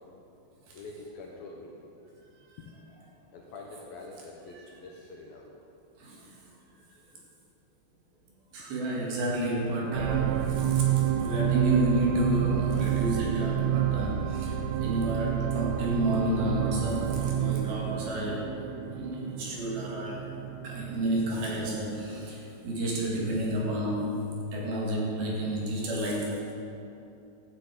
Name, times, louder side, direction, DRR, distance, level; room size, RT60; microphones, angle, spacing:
voice 1, 0.7-1.8 2.6-2.7 3.3-5.6 7.1-7.3 20.6-21.0, left 3 dB, 65° left, -1 dB, 2.5 m, -48 dB
voice 2, 6.0-6.3 8.5-18.5 19.0-20.3 20.6-26.5, right 1 dB, 60° right, -2 dB, 3.6 m, -30 dB
sound 1, 9.9-22.3 22.9-23.0, right 11 dB, 90° right, 3.1 m, -29 dB
12.5 x 8.4 x 8.3 m, 2.7 s
omnidirectional pair, 5.3 m